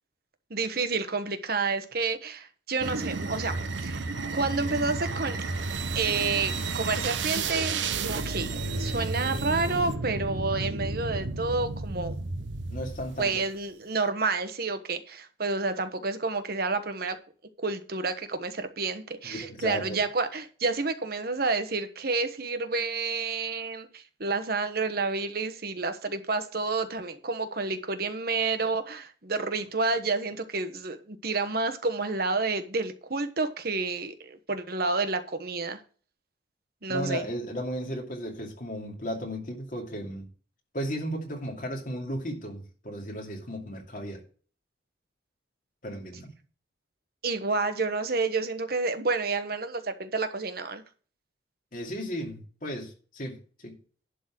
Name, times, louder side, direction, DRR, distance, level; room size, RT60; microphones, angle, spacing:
voice 1, 0.5-3.5 3.8-4.0 4.3-5.4 5.9-7.8 8.1-12.1 13.2-17.2 17.6-35.8 36.8-37.3 47.2-50.8, right 3 dB, 55° right, 1.2 m, -29 dB
sound 1, 2.8-13.4, right 3 dB, 80° right, 0.9 m, -32 dB
voice 2, 12.7-13.4 19.2-20.0 36.9-40.2 40.7-44.2 45.8-46.3 51.7-53.8, equal, 45° left, 2.7 m, -35 dB
11.5 x 4.2 x 7.5 m
head